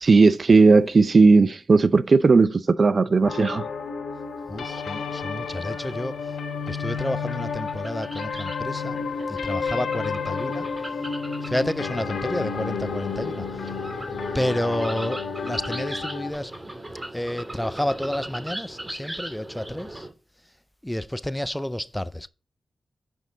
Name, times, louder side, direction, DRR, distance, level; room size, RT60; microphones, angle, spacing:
voice 1, 0.0-3.7, right 4 dB, 55° right, 0.6 m, -16 dB
sound 1, 3.2-16.3, left 5 dB, 85° left, 1.4 m, -31 dB
voice 2, 4.5-6.4 6.7-9.0 9.3-10.7 11.4-13.7 14.3-16.5 17.1-20.1 20.8-22.3, left 1 dB, 10° left, 0.5 m, -30 dB
sound 2, 5.6-20.1, right 1 dB, 30° right, 2.6 m, -39 dB
9.3 x 5.2 x 3.8 m
cardioid pair, 50°, 0 cm